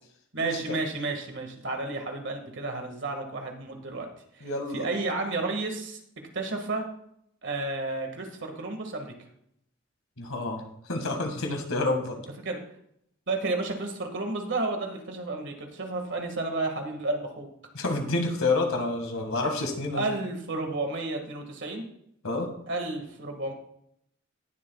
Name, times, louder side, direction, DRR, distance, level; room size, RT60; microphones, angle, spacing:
voice 1, 0.3-4.1 4.3-6.0 6.3-6.9 7.4-9.1 12.4-12.6 13.3-17.5 20.0-21.8 22.7-23.5, right 2 dB, 60° right, 4 dB, 1.9 m, -31 dB
voice 2, 4.4-4.9 10.2-10.6 10.9-12.2 17.7-20.0 22.2-22.5, left 2 dB, 85° left, 4 dB, 1.9 m, -28 dB
18.5 x 7.5 x 2.4 m, 0.71 s
head